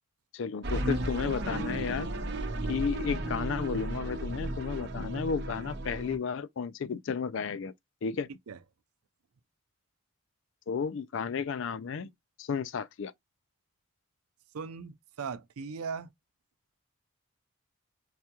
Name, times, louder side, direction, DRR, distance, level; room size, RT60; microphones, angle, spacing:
voice 1, 0.3-2.1 2.7-7.7 8.0-8.3 10.7-12.1 12.4-13.1, left 6 dB, 60° left, 0.4 m, -33 dB
sound 1, 0.6-6.2, right 1 dB, 50° right, 0.8 m, -34 dB
voice 2, 14.5-16.1, right 5 dB, 90° right, 0.5 m, -38 dB
4.8 x 2.2 x 2.8 m
head